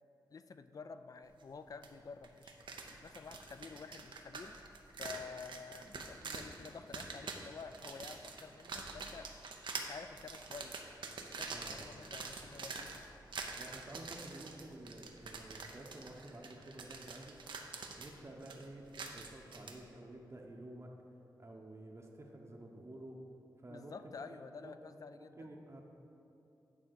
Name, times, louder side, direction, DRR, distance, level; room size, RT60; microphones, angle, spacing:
voice 1, 0.3-2.6 2.9-4.6 5.0-9.3 9.8-10.8 11.2-13.1 23.7-25.4, left 5 dB, 50° left, 11 dB, 0.3 m, -50 dB
sound 1, 1.8-1.9 2.2-19.8, right 4 dB, 85° right, 0.6 m, -46 dB
voice 2, 11.5-12.0 13.6-17.4 18.0-20.9 21.4-23.2 23.6-24.7 25.4-25.8, right 1 dB, 35° right, 0 dB, 0.8 m, -51 dB
9.1 x 3.5 x 6.2 m, 2.9 s
cardioid pair, 65°, 8 cm